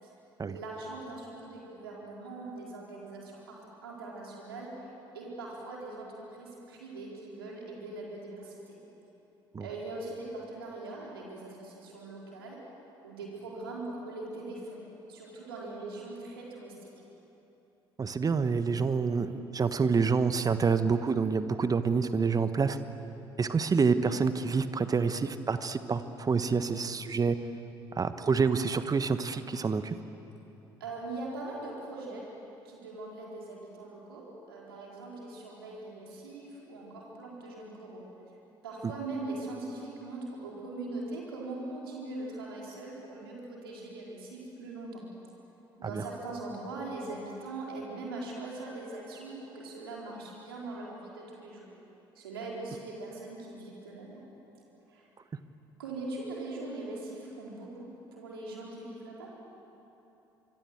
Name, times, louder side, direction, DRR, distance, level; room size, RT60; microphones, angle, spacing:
voice 1, 0.5-4.9 5.1-8.8 9.6-12.6 13.0-14.8 15.1-16.9 30.8-32.3 32.6-38.0 38.6-45.0 45.8-51.7 52.1-54.2 54.9-55.1 55.8-59.3, right 2 dB, 80° right, -3 dB, 4.6 m, -41 dB
voice 2, 18.0-22.8 23.4-27.4 27.9-29.9 45.8-46.0, right 5 dB, 30° right, 11 dB, 1.3 m, -27 dB
25.5 x 25.0 x 7.9 m, 2.9 s
figure-of-eight pair, 50°, 12 cm